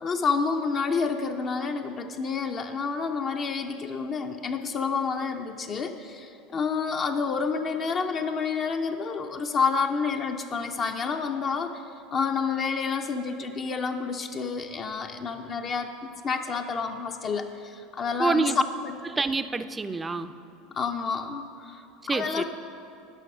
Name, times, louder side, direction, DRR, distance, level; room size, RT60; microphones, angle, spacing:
voice 1, 0.0-11.7 12.1-18.5 18.8-19.0 20.7-22.4, left 5 dB, 40° left, 5 dB, 0.5 m, -29 dB
voice 2, 18.2-18.6 19.0-20.3 22.1-22.4, right 4 dB, 20° right, 11 dB, 0.4 m, -27 dB
10.0 x 5.9 x 5.9 m, 2.8 s
hypercardioid pair, 80°, 0 cm